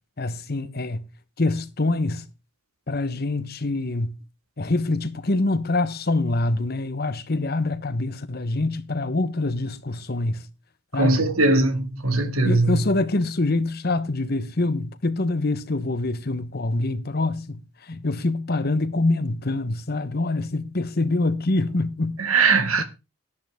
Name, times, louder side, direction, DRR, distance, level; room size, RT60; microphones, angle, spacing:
voice 1, 0.2-1.1 1.4-2.2 2.9-4.2 4.6-10.5 10.9-11.3 12.4-17.6 17.9-22.2 22.8-22.9, left 2 dB, 45° left, 1.0 m, -25 dB
voice 2, 11.0-12.9 22.2-22.8, right 3 dB, 80° right, 2.0 m, -20 dB
13.0 x 10.5 x 3.6 m
head